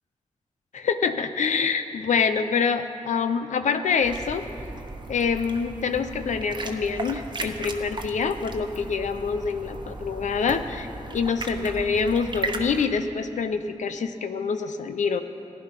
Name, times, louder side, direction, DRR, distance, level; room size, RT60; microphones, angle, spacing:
voice 1, 0.7-4.4 5.1-15.2, left 5 dB, 75° left, 9 dB, 0.6 m, -26 dB
sound 1, 4.0-12.9, right 2 dB, 35° right, 1.0 m, -36 dB
14.5 x 10.0 x 5.7 m, 2.8 s
cardioid pair, 60°, 12 cm